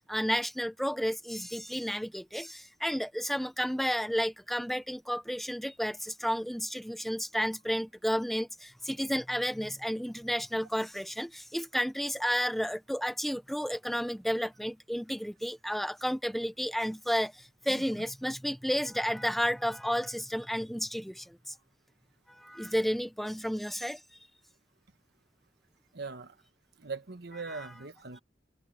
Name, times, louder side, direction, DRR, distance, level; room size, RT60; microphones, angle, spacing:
voice 1, 0.0-21.5 22.3-24.2 27.5-27.7, equal, ahead, 0.8 m, -32 dB
voice 2, 25.9-26.3 26.8-28.2, right 4 dB, 65° right, 1.3 m, -40 dB
head